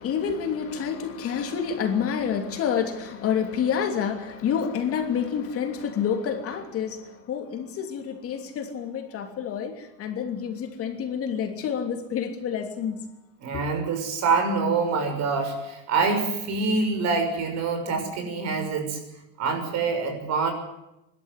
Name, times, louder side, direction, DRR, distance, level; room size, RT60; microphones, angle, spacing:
voice 1, 0.0-13.0, left 7 dB, 35° left, 2.9 m, -28 dB
voice 2, 13.4-19.0 19.4-20.5, right 4 dB, 45° right, 6.4 m, -25 dB
26.0 x 13.0 x 9.8 m
cardioid pair, 155°, 38 cm